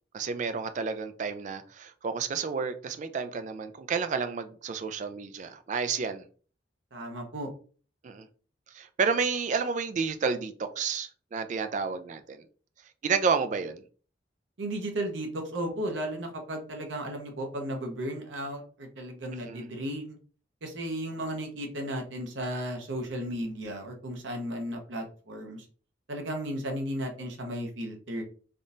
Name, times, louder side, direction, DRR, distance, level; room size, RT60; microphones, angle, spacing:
voice 1, 0.1-6.2 8.0-8.3 8.7-12.4 13.0-13.8 19.4-19.7, right 5 dB, 40° right, 0.3 m, -30 dB
voice 2, 6.9-7.5 14.6-20.2 20.6-25.7 26.1-28.2, right 1 dB, 85° right, 0.8 m, -34 dB
3.5 x 2.6 x 2.4 m
head